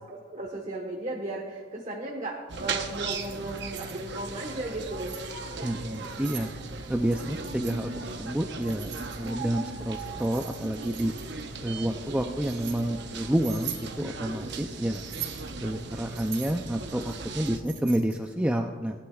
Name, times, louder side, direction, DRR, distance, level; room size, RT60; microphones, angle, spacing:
voice 1, 0.1-5.2, right 2 dB, 35° right, 0 dB, 1.2 m, -35 dB
sound 1, 2.5-17.6, right 3 dB, 60° right, 0.9 m, -38 dB
Keys jangling, 2.9-4.0 4.7-5.3 5.9-6.5 7.1-7.8 8.6-9.5 9.9-11.4 12.1-12.8 13.4-13.9 14.9-15.5 16.1-18.3, right 10 dB, 75° right, 2.8 m, -42 dB
voice 2, 5.6-6.5 6.9-8.9 9.2-11.1 11.6-15.0 15.6-19.0, right 1 dB, 5° right, 3 dB, 0.4 m, -29 dB
19.0 x 11.5 x 2.3 m, 1.5 s
head